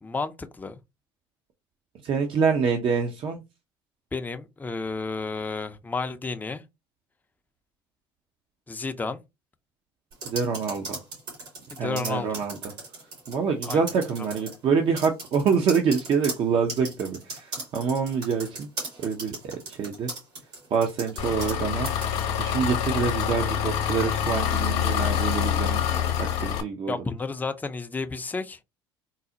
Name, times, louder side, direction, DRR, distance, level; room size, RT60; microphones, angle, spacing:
voice 1, 0.0-0.8 4.1-6.6 8.7-9.2 11.7-12.4 13.7-13.8 26.9-28.6, left 4 dB, 15° left, 0.4 m, -31 dB
voice 2, 2.0-3.4 10.3-11.0 11.8-12.6 13.3-18.7 19.0-19.4 19.7-20.1 20.7-21.9 22.4-25.8 26.2-27.0, right 6 dB, 50° right, 0.6 m, -26 dB
sound 1, 10.1-13.4 13.6-14.6 15.0-21.6 21.9-22.1, right 3 dB, 75° right, 2.1 m, -37 dB
Engine, 21.2-26.6, left 9 dB, 65° left, 0.8 m, -26 dB
3.9 x 2.0 x 2.6 m
hypercardioid pair, 65°, 12 cm